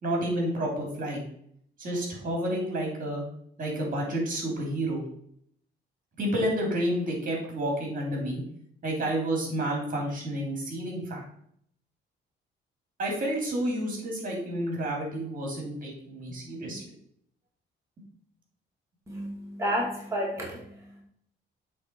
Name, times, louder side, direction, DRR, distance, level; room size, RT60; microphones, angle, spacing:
voice 1, 0.0-1.3 1.8-3.2 3.6-5.0 6.2-8.4 8.8-11.2 13.0-16.8, right 1 dB, 45° right, -1 dB, 3.1 m, -30 dB
voice 2, 19.1-21.0, equal, 15° right, -5 dB, 2.4 m, -31 dB
8.0 x 3.9 x 4.6 m, 0.67 s
cardioid pair, 90°, 20 cm